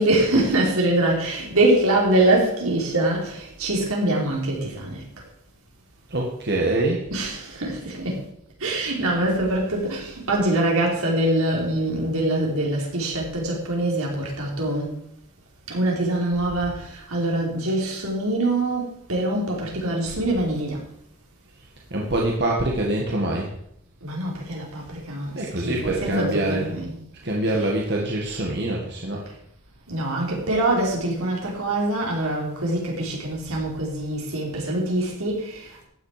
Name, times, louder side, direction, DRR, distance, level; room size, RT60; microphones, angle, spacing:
voice 1, 0.0-5.0 7.1-8.3 8.6-15.0 15.7-20.9 24.0-27.0 27.6-27.7 29.9-35.8, right 1 dB, 80° right, 4.9 m, -24 dB
voice 2, 6.1-7.0 21.9-23.5 25.4-26.7 27.2-29.2, right 1 dB, 50° right, 2.0 m, -24 dB
14.5 x 10.0 x 5.1 m
head